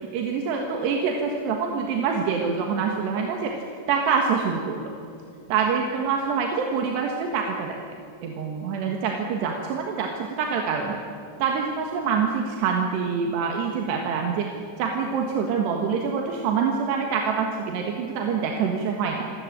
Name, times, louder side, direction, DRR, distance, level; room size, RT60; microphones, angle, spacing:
voice 1, 0.1-3.5 3.9-4.9 5.5-7.8 8.2-11.0 11.4-14.5 14.8-19.3, right 6 dB, 85° right, 1 dB, 3.7 m, -25 dB
28.5 x 13.5 x 8.9 m, 2.4 s
omnidirectional pair, 4.7 m